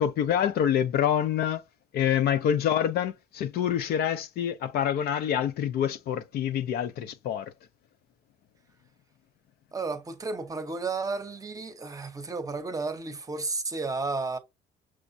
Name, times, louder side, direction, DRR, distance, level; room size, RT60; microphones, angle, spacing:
voice 1, 0.0-1.6 1.9-7.5, left 9 dB, 70° left, 0.5 m, -26 dB
voice 2, 9.7-14.4, right 3 dB, 20° right, 0.7 m, -32 dB
6.1 x 2.1 x 2.5 m
cardioid pair, 110°, 17 cm